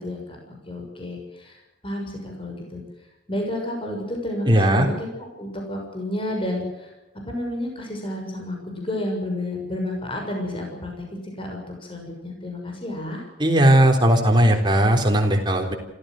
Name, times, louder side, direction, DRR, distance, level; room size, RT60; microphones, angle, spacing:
voice 1, 0.0-2.8 3.3-5.1 5.4-6.9 7.3-13.2, left 1 dB, 30° left, 1 dB, 6.6 m, -31 dB
voice 2, 4.5-4.9 13.4-15.8, right 1 dB, 25° right, 3 dB, 3.9 m, -17 dB
27.5 x 15.0 x 7.8 m, 1.0 s
head